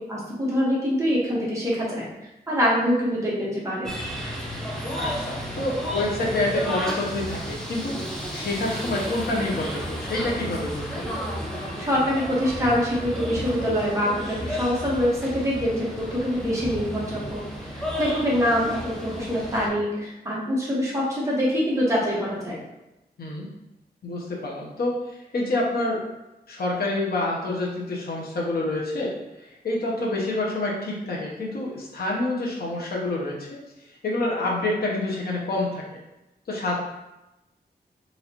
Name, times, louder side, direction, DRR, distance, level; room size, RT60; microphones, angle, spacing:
voice 1, 0.1-2.1 2.5-3.9 11.7-17.4 17.7-22.6, equal, 15° right, -6 dB, 1.3 m, -24 dB
sound 1, 3.8-19.7, equal, 5° left, 0.7 m, -32 dB
voice 2, 5.0-7.9 8.3-11.1 23.2-23.5 24.0-26.0 26.5-29.1 29.4-33.6 33.9-35.8 36.5-36.7, left 2 dB, 65° left, -3 dB, 0.8 m, -27 dB
4.0 x 3.1 x 2.9 m, 0.95 s
wide cardioid pair, 150°, 17 cm